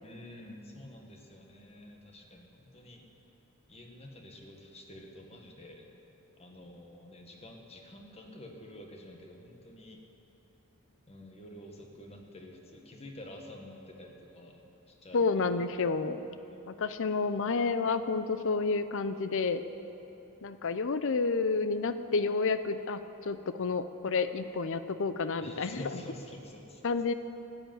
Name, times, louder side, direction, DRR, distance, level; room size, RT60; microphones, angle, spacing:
voice 1, 0.0-3.0 3.7-5.8 6.4-10.0 11.1-14.6 14.9-15.7 16.2-16.7 25.4-26.8, left 1 dB, 30° left, 2 dB, 1.5 m, -49 dB
voice 2, 15.1-16.2 16.7-19.6 20.4-26.0 26.8-27.1, left 4 dB, 60° left, 11 dB, 0.6 m, -30 dB
13.5 x 7.9 x 9.0 m, 3.0 s
head